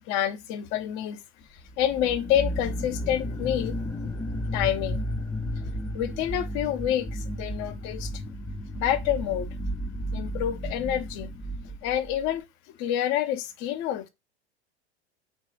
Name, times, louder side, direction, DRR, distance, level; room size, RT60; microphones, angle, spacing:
voice 1, 0.1-1.2 1.8-4.1 4.5-5.0 5.6-8.1 8.7-9.5 10.1-11.3 11.6-12.4 12.8-14.1, left 11 dB, 35° left, 0.7 m, -28 dB
sound 1, 1.7-12.3, equal, 5° left, 0.3 m, -33 dB
5.0 x 2.4 x 3.7 m
figure-of-eight pair, 85°, 33 cm